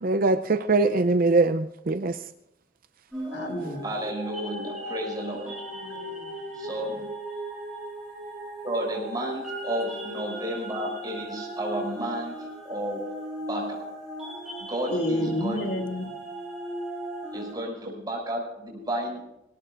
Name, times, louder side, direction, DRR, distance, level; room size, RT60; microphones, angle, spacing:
voice 1, 0.0-2.1, right 3 dB, 55° right, 10 dB, 0.6 m, -22 dB
sound 1, 3.1-17.5, right 1 dB, 5° right, 6.8 m, -37 dB
voice 2, 3.3-3.9 5.4-6.7 14.9-16.1, left 1 dB, 80° left, 2 dB, 2.2 m, -31 dB
voice 3, 3.8-5.5 6.6-6.9 8.6-12.4 12.6-13.0 13.5-13.8 14.7-15.7 17.3-19.4, right 1 dB, 25° right, -1 dB, 6.3 m, -32 dB
25.5 x 18.0 x 2.5 m, 0.86 s
head